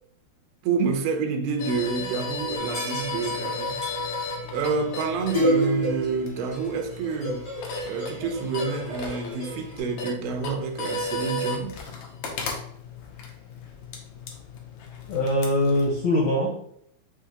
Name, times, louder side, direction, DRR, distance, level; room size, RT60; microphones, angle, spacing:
voice 1, 0.6-3.8 4.5-7.5 7.9-11.8, right 5 dB, 85° right, 2.6 m, -28 dB
sound 1, 1.6-16.0, left 2 dB, 90° left, 1.6 m, -35 dB
sound 2, 2.6-9.8, equal, 55° left, 0.4 m, -31 dB
voice 2, 15.1-16.7, left 1 dB, 75° left, 1.7 m, -23 dB
6.6 x 2.6 x 2.8 m
omnidirectional pair, 4.3 m